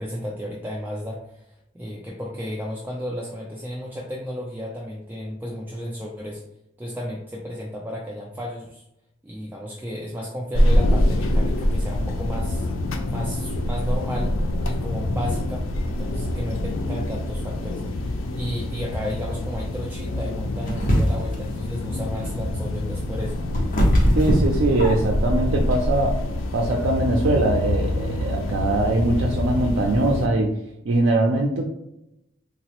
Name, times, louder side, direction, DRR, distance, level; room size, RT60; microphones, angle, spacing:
voice 1, 0.0-6.4 6.8-8.8 9.2-12.7 13.1-14.3 14.6-23.4, equal, 10° right, -3 dB, 0.4 m, -33 dB
sound 1, 10.5-30.3, left 1 dB, 90° left, 0.4 m, -25 dB
sound 2, 20.7-21.4 23.0-25.3, equal, 45° left, 0.7 m, -21 dB
voice 2, 24.2-26.2 26.5-30.6 30.8-31.7, right 2 dB, 75° right, 0 dB, 0.4 m, -22 dB
3.8 x 2.0 x 2.8 m, 0.84 s
head